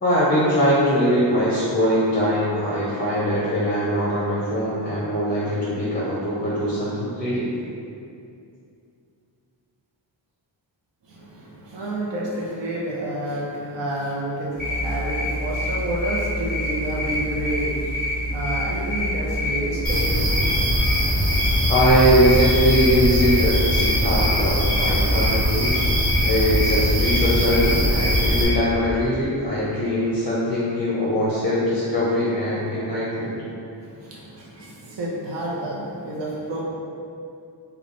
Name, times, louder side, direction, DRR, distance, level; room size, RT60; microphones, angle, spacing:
voice 1, 0.0-7.5 21.7-25.8 26.2-33.3, equal, 20° left, -8 dB, 0.5 m, -21 dB
voice 2, 11.0-20.6 21.4-21.5 33.7-36.6, right 1 dB, 70° right, -5 dB, 0.6 m, -29 dB
sound 1, 14.5-28.6, left 1 dB, 20° right, 1.3 m, -27 dB
sound 2, 19.8-28.4, equal, 40° right, 0.9 m, -22 dB
3.4 x 2.2 x 3.7 m, 2.6 s
wide cardioid pair, 150°, 45 cm